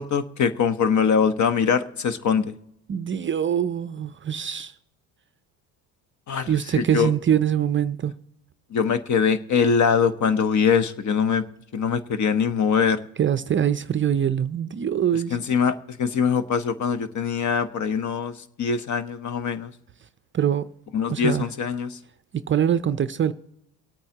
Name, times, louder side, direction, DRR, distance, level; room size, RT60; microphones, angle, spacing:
voice 1, 0.0-2.5 6.3-7.1 8.7-11.4 11.7-13.0 15.3-19.7 20.9-22.0, left 6 dB, 45° left, 1.0 m, -23 dB
voice 2, 2.9-4.8 6.5-8.1 13.2-15.4 20.3-20.7 21.1-21.5 22.3-23.3, right 9 dB, 30° right, 0.5 m, -23 dB
24.0 x 8.7 x 2.9 m
supercardioid pair, 85°, 41 cm